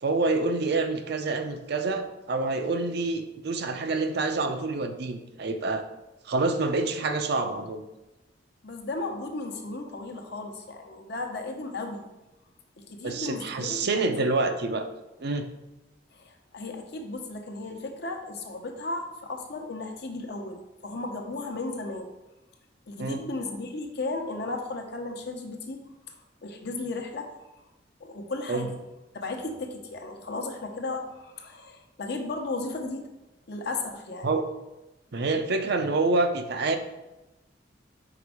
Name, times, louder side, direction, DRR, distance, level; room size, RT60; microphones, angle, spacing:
voice 1, 0.0-5.8 6.2-7.9 13.0-14.9 15.2-15.5 23.0-23.2 28.5-28.7 34.2-34.4 35.1-36.8, right 3 dB, 60° right, 7 dB, 0.6 m, -27 dB
voice 2, 8.6-12.0 12.8-14.0 16.1-22.1 22.9-27.4 28.0-28.7 29.1-33.1 33.5-34.3, left 2 dB, 60° left, 3 dB, 0.9 m, -35 dB
5.1 x 4.8 x 4.8 m, 1.0 s
head